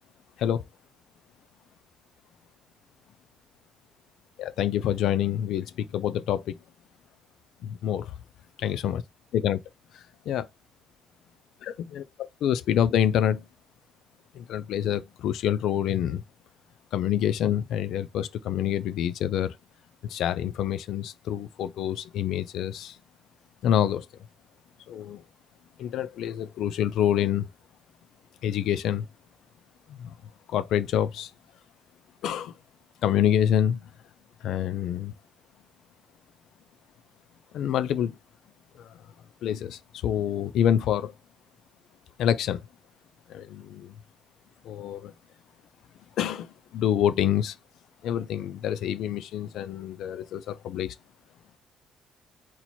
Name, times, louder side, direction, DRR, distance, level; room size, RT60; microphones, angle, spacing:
voice 1, 4.4-6.5 7.6-8.1 8.6-9.0 9.3-9.6 9.9-10.5 11.6-12.0 12.4-13.4 14.3-16.2 16.9-19.6 20.0-23.0 23.6-24.1 24.9-25.2 25.8-27.5 28.4-29.1 29.9-30.1 30.5-31.3 32.2-32.5 33.0-33.8 34.4-35.1 37.5-38.2 38.8-38.9 39.4-41.1 42.2-42.6 43.3-43.9 44.6-45.1 46.2-47.6 48.0-50.9, left 10 dB, 60° left, 0.4 m, -27 dB
4.2 x 2.8 x 4.3 m
cardioid pair, 170°, 0 cm